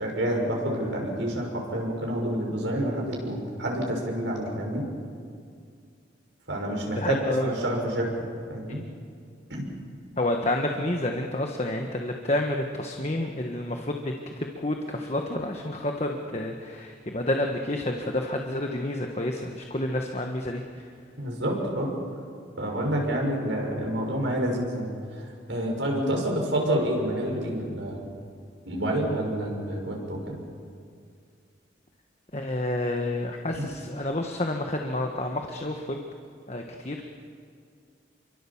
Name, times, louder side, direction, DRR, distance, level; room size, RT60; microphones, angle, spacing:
voice 1, 0.0-4.9 6.5-7.2 7.4-8.8 9.5-9.7 21.2-21.9 22.6-28.1 28.6-30.4 33.5-33.6, right 1 dB, 80° right, 0 dB, 6.2 m, -28 dB
voice 2, 7.0-7.5 8.7-8.8 10.2-21.1 32.3-36.0 36.5-37.2, left 1 dB, 35° left, 2 dB, 1.3 m, -29 dB
28.0 x 23.5 x 7.3 m, 2.3 s
head